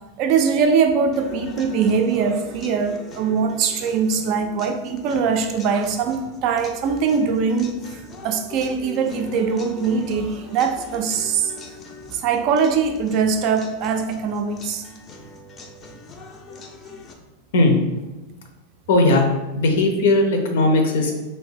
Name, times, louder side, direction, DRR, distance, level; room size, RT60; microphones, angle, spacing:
voice 1, 0.2-7.7 8.2-11.5 12.1-14.8, right 5 dB, 40° right, 0.4 m, -22 dB
sound 1, 1.1-17.1, left 3 dB, 25° left, 0.4 m, -42 dB
voice 2, 18.9-19.2 19.5-21.1, left 2 dB, 75° left, 0.7 m, -17 dB
2.6 x 2.6 x 3.7 m
supercardioid pair, 150°, 0 cm